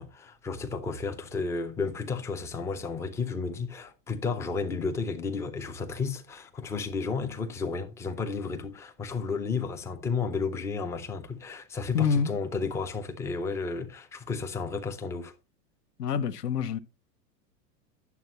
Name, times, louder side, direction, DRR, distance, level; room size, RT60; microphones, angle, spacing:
voice 1, 0.0-15.3, left 4 dB, 5° left, 0.4 m, -32 dB
voice 2, 11.9-12.3 16.0-16.8, left 6 dB, 70° left, 0.8 m, -26 dB
9.5 x 7.0 x 2.9 m
figure-of-eight pair, 90°, 49 cm